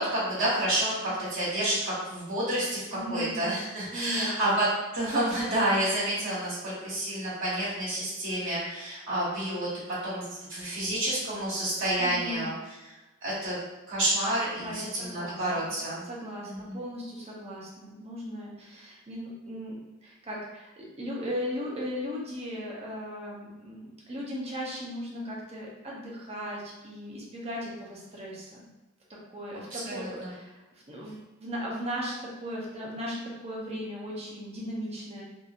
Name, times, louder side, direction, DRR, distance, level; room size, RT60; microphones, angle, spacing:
voice 1, 0.0-2.8 3.1-4.6 4.9-9.7 10.0-12.5 13.2-13.6 13.9-16.0 16.4-16.8 29.7-30.3, right 1 dB, 65° right, -9 dB, 1.2 m, -29 dB
voice 2, 2.9-3.4 3.9-4.3 12.0-12.5 14.6-15.8 16.0-19.8 20.0-28.7 29.1-35.2, equal, 30° right, -4 dB, 0.7 m, -37 dB
2.8 x 2.5 x 2.5 m, 1.1 s
head